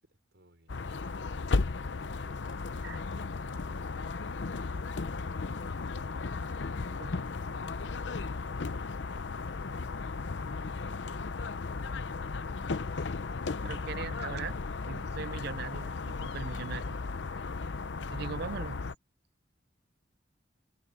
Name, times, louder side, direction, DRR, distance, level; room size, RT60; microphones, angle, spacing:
voice 1, 0.0-4.1 6.4-8.7 9.0-9.3 9.9-11.0 11.5-11.9, right 1 dB, 80° right, 5.5 m, -66 dB
sound 1, 0.7-18.9, left 4 dB, 80° left, 0.7 m, -35 dB
voice 2, 13.6-14.6 14.9-17.4 18.1-18.8, right 6 dB, 60° right, 0.4 m, -40 dB
head